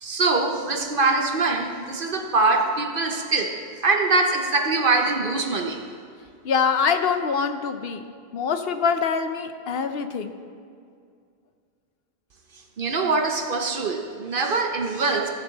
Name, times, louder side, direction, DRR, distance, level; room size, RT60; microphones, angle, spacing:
voice 1, 0.0-3.5 3.8-5.8 12.8-15.3, right 3 dB, 60° right, 4 dB, 1.0 m, -23 dB
voice 2, 6.4-8.0 8.3-10.3, left 6 dB, 70° left, 8 dB, 0.9 m, -24 dB
15.5 x 7.0 x 4.0 m, 2.3 s
omnidirectional pair, 1.1 m